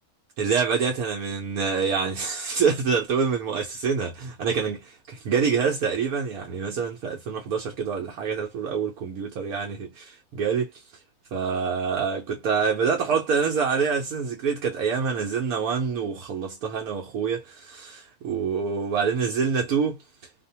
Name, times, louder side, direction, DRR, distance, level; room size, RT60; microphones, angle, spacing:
voice 1, 0.4-10.7 11.3-20.0, right 6 dB, 75° right, 1.2 m, -26 dB
2.9 x 2.1 x 2.7 m
omnidirectional pair, 1.6 m